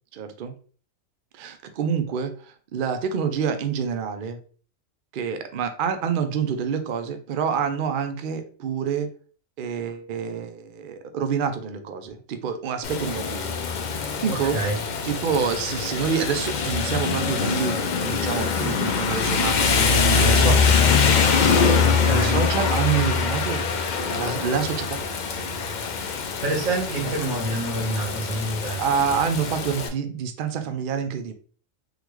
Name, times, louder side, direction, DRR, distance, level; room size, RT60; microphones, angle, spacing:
voice 1, 0.1-0.5 1.4-2.3 2.7-4.4 5.1-9.1 9.6-13.5 13.9-14.6 15.0-20.9 21.6-25.0 28.8-31.3, right 7 dB, 65° right, 7 dB, 0.5 m, -27 dB
Rain, 12.8-29.9, left 5 dB, 80° left, 0.4 m, -23 dB
voice 2, 14.3-14.8 21.8-22.4 26.1-28.8, right 2 dB, 80° right, -1 dB, 1.6 m, -27 dB
3.7 x 2.2 x 3.0 m, 0.41 s
omnidirectional pair, 1.4 m